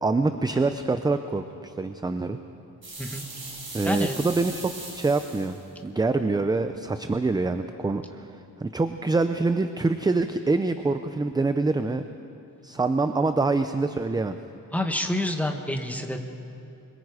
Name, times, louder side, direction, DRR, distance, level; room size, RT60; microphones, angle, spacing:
voice 1, 0.0-2.4 3.7-12.1 12.6-14.4, right 3 dB, 10° right, 9 dB, 0.4 m, -25 dB
sound 1, 2.8-5.6, right 2 dB, 35° right, 5.4 m, -39 dB
voice 2, 3.8-4.2 14.7-16.2, left 1 dB, 5° left, 4 dB, 1.2 m, -28 dB
24.5 x 22.5 x 4.8 m, 2.8 s
wide cardioid pair, 165°, 35 cm